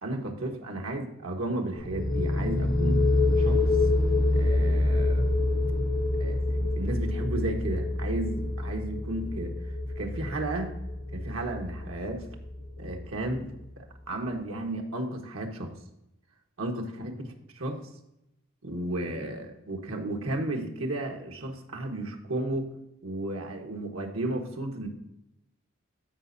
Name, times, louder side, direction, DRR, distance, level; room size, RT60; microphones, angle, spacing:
voice 1, 0.0-3.0 3.4-3.9 4.3-5.3 6.2-10.8 11.1-12.2 12.8-15.7 16.6-17.8 18.6-22.7 23.0-24.9, right 1 dB, 85° right, 2 dB, 1.4 m, -34 dB
sound 1, 1.7-13.3, left 2 dB, 45° left, 1.0 m, -27 dB
13.0 x 5.2 x 2.7 m, 0.85 s
head